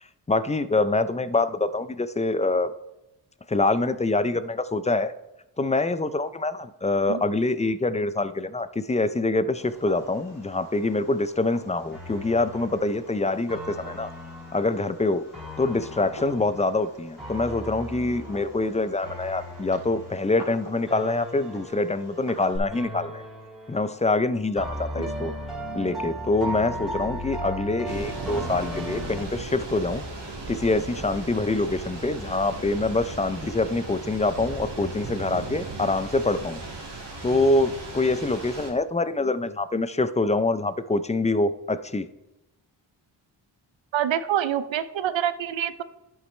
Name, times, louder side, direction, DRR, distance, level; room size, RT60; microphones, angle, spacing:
voice 1, 0.3-2.7 3.5-5.1 5.6-14.1 14.5-15.3 15.6-23.2 23.7-25.3 25.7-30.0 30.5-36.6 37.2-42.1, left 2 dB, 15° left, 14 dB, 0.5 m, -25 dB
Fireworks, 9.6-22.6, left 1 dB, 65° left, 3.5 m, -47 dB
sound 1, 11.9-22.4 22.7-24.1 24.6-29.2, equal, ahead, 2.9 m, -37 dB
Thunder / Rain, 27.8-38.7, right 2 dB, 65° right, 2.0 m, -36 dB
voice 2, 43.9-45.8, right 10 dB, 80° right, 13 dB, 0.7 m, -26 dB
11.0 x 8.2 x 3.2 m, 0.95 s
cardioid pair, 55°, 45 cm